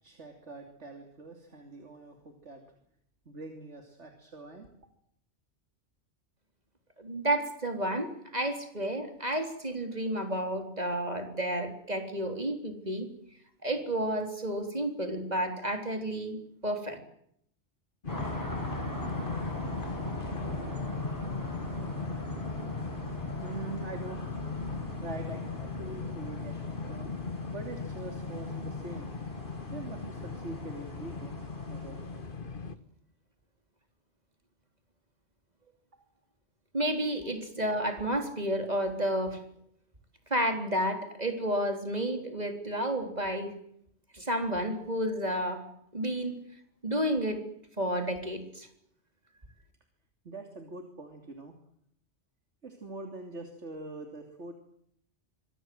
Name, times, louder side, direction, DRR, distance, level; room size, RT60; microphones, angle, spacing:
voice 1, 0.0-2.6 3.2-4.7 23.0-27.1 27.5-29.2 29.7-32.0 50.2-51.6 52.6-54.5, right 2 dB, 75° right, 5 dB, 3.3 m, -44 dB
voice 2, 7.0-13.1 13.6-17.0 36.7-39.4 40.3-43.5 44.1-45.6 45.9-46.3 46.8-47.4 47.8-48.7, right 1 dB, 35° right, 6 dB, 3.9 m, -31 dB
sound 1, 18.0-32.8, left 4 dB, 50° left, 1.7 m, -38 dB
sound 2, 18.1-32.4, equal, 15° left, 7.8 m, -41 dB
26.0 x 23.0 x 7.8 m, 0.71 s
omnidirectional pair, 1.2 m